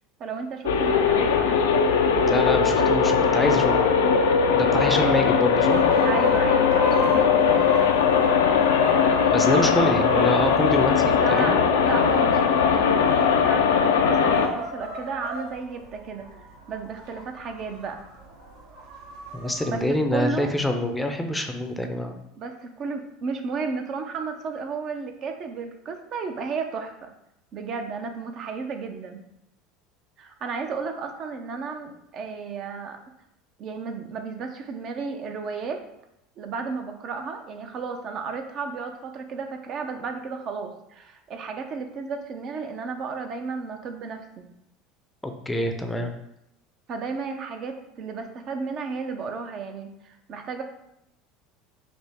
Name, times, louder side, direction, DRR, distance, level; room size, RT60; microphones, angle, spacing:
voice 1, 0.2-1.7 6.0-7.8 9.5-10.3 11.2-16.3 16.7-18.0 19.7-19.8 20.1-20.5 21.9-22.0 22.4-27.1 27.5-29.2 30.2-33.0 33.6-35.8 36.4-44.4 46.9-50.6, right 4 dB, 50° right, 5 dB, 0.5 m, -33 dB
sound 1, 0.7-14.5, left 6 dB, 80° left, 0.4 m, -20 dB
voice 2, 2.2-3.8 4.5-5.8 9.3-11.6 19.3-22.2 45.2-46.1, left 1 dB, 10° left, 5 dB, 0.5 m, -26 dB
sound 2, 5.7-20.0, right 2 dB, 70° right, 0.9 m, -37 dB
5.1 x 2.0 x 3.4 m, 0.82 s
hypercardioid pair, 75°, 0 cm